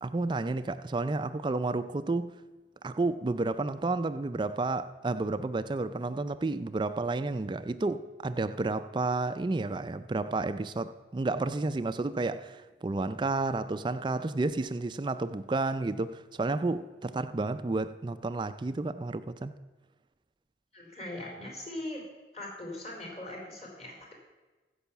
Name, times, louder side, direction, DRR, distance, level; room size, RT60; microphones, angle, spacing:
voice 1, 0.0-2.3 2.8-19.5, right 3 dB, 25° right, 0.4 m, -31 dB
voice 2, 20.7-22.0 22.3-24.1, left 1 dB, 40° left, 3.0 m, -40 dB
13.5 x 5.6 x 7.1 m
head